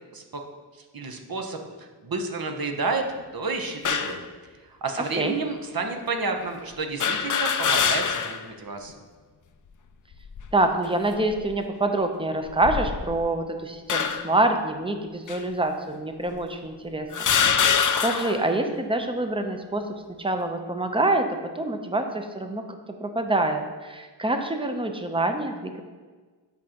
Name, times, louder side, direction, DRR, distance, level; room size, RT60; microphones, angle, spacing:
voice 1, 0.9-3.0 3.3-4.2 4.8-8.9, right 3 dB, 55° right, 4 dB, 0.9 m, -30 dB
sound 1, 3.8-4.2 5.1-5.2 7.0-8.5 8.9-9.0 10.1-10.6 11.3-11.5 12.5-13.3 13.9-14.4 15.3-15.4 16.3-16.4 17.1-18.5, left 7 dB, 50° left, 0.4 m, -24 dB
voice 2, 10.5-17.3 17.5-17.8 18.0-19.8 20.2-21.3 21.5-22.6 23.0-25.8, right 2 dB, 15° right, 5 dB, 0.6 m, -26 dB
8.3 x 5.0 x 2.9 m, 1.4 s
wide cardioid pair, 60°, 42 cm